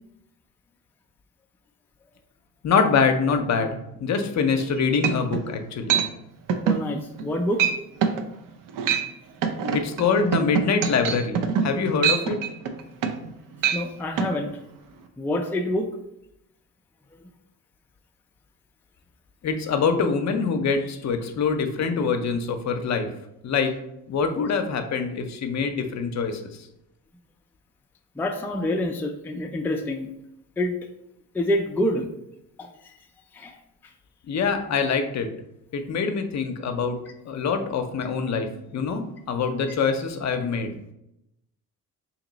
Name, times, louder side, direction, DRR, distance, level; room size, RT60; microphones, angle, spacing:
voice 1, 2.6-6.0 9.7-12.4 19.4-23.1 23.4-23.7 24.1-26.4 34.3-35.3 35.7-37.0 37.2-40.7, left 5 dB, 50° left, 7 dB, 0.6 m, -24 dB
sound 1, 4.6-4.7 5.0-5.5 5.9-6.1 6.5-6.8 7.2-7.3 7.6-8.2 8.7-9.1 9.4-13.3 13.6-13.8 14.2-14.3, right 7 dB, 65° right, 0.5 m, -24 dB
voice 2, 6.6-7.6 13.7-14.5 15.2-15.9 28.2-30.1 30.6-30.7 31.3-32.1 32.6-32.7 33.4-33.5, left 1 dB, 5° left, 3 dB, 0.4 m, -26 dB
2.9 x 2.9 x 3.9 m, 0.82 s
supercardioid pair, 70°, 36 cm